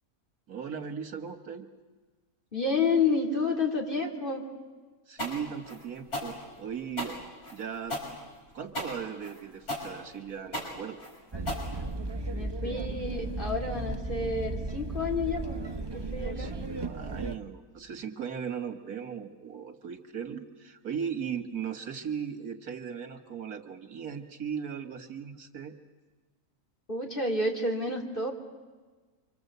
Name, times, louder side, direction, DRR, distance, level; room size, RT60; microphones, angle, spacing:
voice 1, 0.5-1.7 5.1-7.2 7.5-8.0 8.5-11.0 16.4-25.7, right 7 dB, 80° right, 7 dB, 2.2 m, -37 dB
voice 2, 2.5-4.5 12.3-15.6 15.9-16.6 26.9-28.3, left 3 dB, 35° left, 0 dB, 3.5 m, -30 dB
sound 1, 5.2-12.3, left 1 dB, 75° left, 6.5 m, -36 dB
sound 2, 11.3-17.4, right 2 dB, 25° right, 0.7 m, -35 dB
26.5 x 25.5 x 8.1 m, 1.3 s
omnidirectional pair, 1.6 m